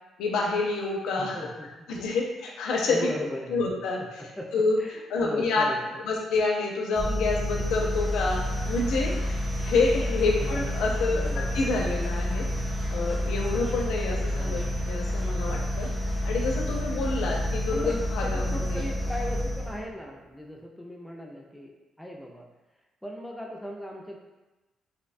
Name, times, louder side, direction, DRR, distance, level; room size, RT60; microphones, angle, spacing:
voice 1, 0.2-1.5 1.9-3.0 3.5-4.2 4.5-4.8 5.1-5.7 6.0-11.2 11.5-12.5 12.9-14.6 14.9-15.9 16.2-18.8, left 3 dB, 80° left, -1 dB, 0.4 m, -28 dB
voice 2, 1.2-1.7 2.0-2.1 2.9-3.6 4.2-4.5 4.8-5.8 10.2-10.7 11.1-11.6 14.1-14.8 17.7-17.9 18.2-21.7 22.0-22.5 23.0-24.2, equal, 5° left, -1 dB, 0.4 m, -38 dB
sound 1, 6.9-19.9, equal, 45° right, 0.8 m, -29 dB
2.6 x 2.1 x 2.4 m, 1.1 s
cardioid pair, 90°, 0 cm